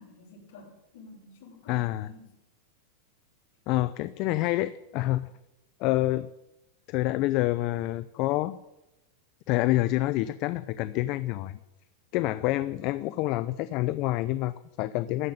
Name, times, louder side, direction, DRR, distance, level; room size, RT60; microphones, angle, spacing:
voice 1, 0.0-2.2, left 2 dB, 65° left, -2 dB, 6.3 m, -50 dB
voice 2, 1.7-2.1 3.7-5.3 5.8-6.3 6.9-8.6 9.5-11.6 12.1-15.3, left 17 dB, 45° left, 14 dB, 0.4 m, -27 dB
14.5 x 5.6 x 9.3 m, 0.93 s
supercardioid pair, 150°, 0 cm